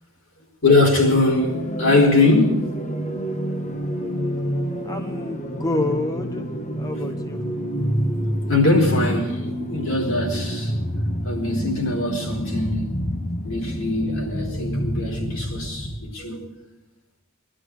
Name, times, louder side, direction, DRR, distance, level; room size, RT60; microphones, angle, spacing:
voice 1, 0.6-3.5 8.5-10.8 11.2-13.0 13.4-16.5, left 2 dB, 70° left, 4.5 m, -22 dB
sound 1, 1.1-16.1, equal, 35° left, 1.3 m, -28 dB
voice 2, 4.8-6.5 6.8-7.4, left 2 dB, 15° left, 1.0 m, -27 dB
22.0 x 12.5 x 4.9 m
head